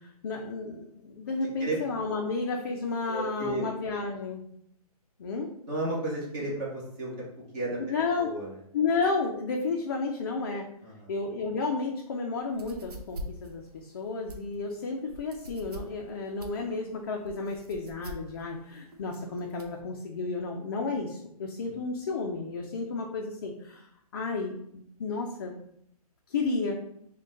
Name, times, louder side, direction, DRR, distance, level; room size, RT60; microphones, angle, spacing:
voice 1, 0.0-4.4 5.2-5.5 7.8-8.3 8.7-10.7 11.1-23.9 24.1-25.5 26.3-26.8, left 4 dB, 35° left, 1 dB, 0.4 m, -32 dB
voice 2, 3.1-3.6 5.7-7.8 8.2-8.5 10.8-11.1 21.6-21.7, right 2 dB, 25° right, -5 dB, 1.1 m, -33 dB
sound 1, 12.5-19.8, right 1 dB, 75° right, 0.7 m, -44 dB
3.6 x 2.2 x 3.7 m, 0.72 s
hypercardioid pair, 155°, 20 cm